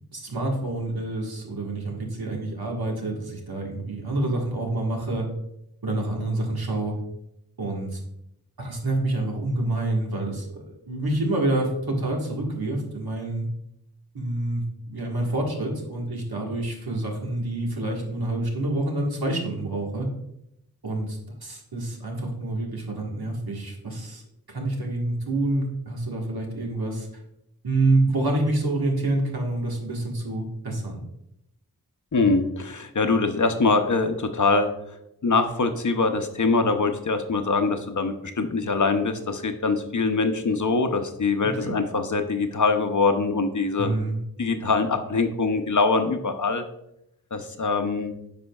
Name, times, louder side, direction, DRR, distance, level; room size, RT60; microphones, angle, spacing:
voice 1, 0.1-5.3 5.8-7.0 7.6-8.0 8.6-13.5 14.1-14.6 14.9-20.1 20.8-24.2 24.5-27.1 27.6-31.0 41.4-41.7 43.8-44.2, right 2 dB, 75° right, 0 dB, 1.6 m, -27 dB
voice 2, 32.1-34.7 35.2-44.0 44.4-46.6 47.3-48.1, left 3 dB, 50° left, 7 dB, 0.7 m, -23 dB
9.7 x 5.1 x 2.3 m, 0.81 s
wide cardioid pair, 55°, 38 cm